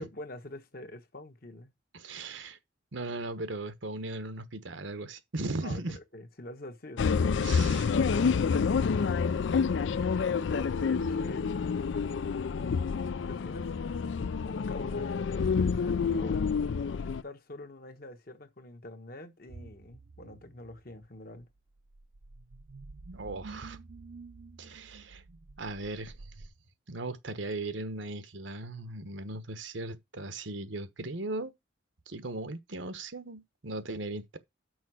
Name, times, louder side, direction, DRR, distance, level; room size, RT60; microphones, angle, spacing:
voice 1, 0.0-1.7 5.6-8.8 9.7-10.8 11.1-11.6 13.2-13.7 14.3-16.5 17.0-21.5, left 1 dB, 50° left, 1.2 m, -45 dB
voice 2, 1.9-2.6 2.9-6.0 7.4-7.8 23.1-23.8 24.6-25.2 25.6-26.5 26.9-31.5 32.1-34.4, right 2 dB, 75° right, 1.2 m, -38 dB
sound 1, 7.0-17.2, left 5 dB, 75° left, 0.4 m, -28 dB
sound 2, 19.5-26.5, right 3 dB, 60° right, 0.6 m, -49 dB
6.3 x 5.1 x 6.2 m
head